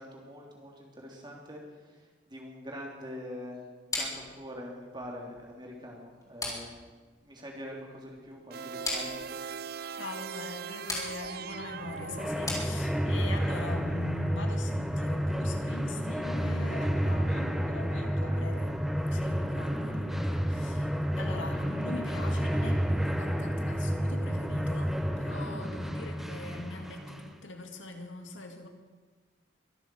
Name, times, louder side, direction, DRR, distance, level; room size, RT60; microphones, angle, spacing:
voice 1, 0.0-3.6 3.9-6.8 7.2-9.2 18.2-18.4, equal, 25° right, 3.1 m, -44 dB
sound 1, 3.9-13.3, left 2 dB, 20° left, 4.0 m, -40 dB
sound 2, 8.5-12.8, right 6 dB, 50° right, 0.5 m, -40 dB
voice 2, 9.9-18.8 19.1-28.7, left 2 dB, 85° left, 2.2 m, -42 dB
sound 3, 11.6-27.4, equal, ahead, 0.9 m, -30 dB
23.5 x 8.0 x 7.7 m
head